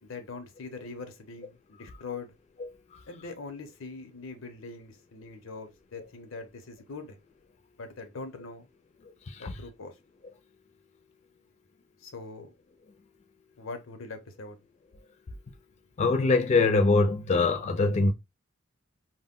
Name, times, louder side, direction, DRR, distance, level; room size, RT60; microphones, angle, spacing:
voice 1, 0.0-2.3 3.1-7.2 7.8-8.7 9.4-10.0 12.0-12.5 13.6-14.6, left 3 dB, 90° left, 0.7 m, -42 dB
voice 2, 16.0-18.1, left 3 dB, 35° left, 0.3 m, -23 dB
2.1 x 2.1 x 3.6 m
head